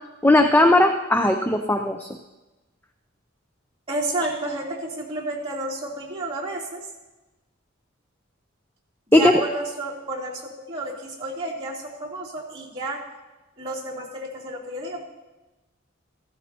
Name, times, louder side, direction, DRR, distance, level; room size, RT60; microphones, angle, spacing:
voice 1, 0.2-2.1 9.1-9.3, left 1 dB, 10° left, 6 dB, 0.5 m, -17 dB
voice 2, 3.9-6.9 9.1-13.0 13.6-15.0, right 2 dB, 30° right, -7 dB, 3.3 m, -31 dB
15.0 x 14.0 x 2.9 m, 1.1 s
head